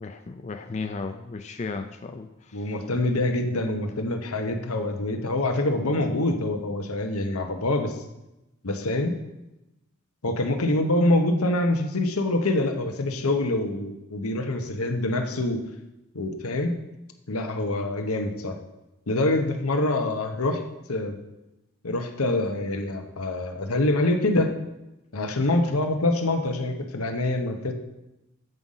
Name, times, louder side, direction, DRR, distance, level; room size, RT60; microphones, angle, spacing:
voice 1, 0.0-2.7, left 4 dB, 30° left, 6 dB, 0.4 m, -35 dB
voice 2, 2.5-8.0 8.6-9.2 10.2-15.6 16.1-16.8 17.3-18.6 19.1-20.6 20.9-21.2 21.8-24.5 25.1-27.7, left 2 dB, 85° left, 4 dB, 1.0 m, -25 dB
8.0 x 5.1 x 5.6 m, 0.93 s
head